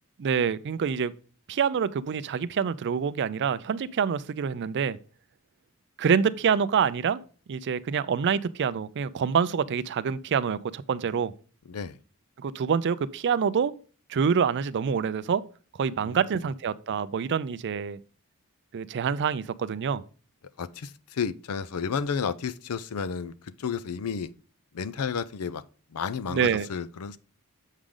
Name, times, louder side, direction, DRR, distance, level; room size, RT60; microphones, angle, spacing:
voice 1, 0.2-1.1 1.5-5.0 6.0-7.2 7.5-11.3 12.4-13.7 14.1-15.4 15.8-18.0 18.7-20.0 26.3-26.7, right 6 dB, 55° right, 0.4 m, -26 dB
voice 2, 20.6-23.3 23.6-24.3 24.7-25.6 25.9-27.2, left 6 dB, 80° left, 0.5 m, -32 dB
7.3 x 5.0 x 3.8 m
head